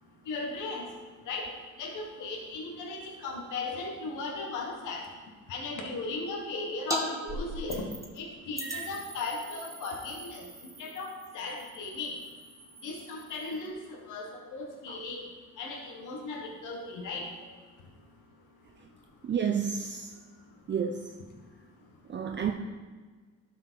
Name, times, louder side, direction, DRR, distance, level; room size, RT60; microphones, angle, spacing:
voice 1, 0.3-0.8 1.3-1.5 1.8-5.0 5.5-7.8 8.2-10.4 10.8-12.1 12.8-13.8 14.1-15.2 15.6-17.3, left 3 dB, 85° left, 1 dB, 1.4 m, -36 dB
sound 1, 6.9-7.0 7.3-8.2 8.6-13.7, right 1 dB, 10° right, 1.4 m, -40 dB
voice 2, 19.2-20.1 20.7-21.1 22.1-22.5, right 7 dB, 40° right, 5 dB, 0.6 m, -30 dB
11.5 x 4.9 x 4.5 m, 1.4 s
cardioid pair, 90°, 30 cm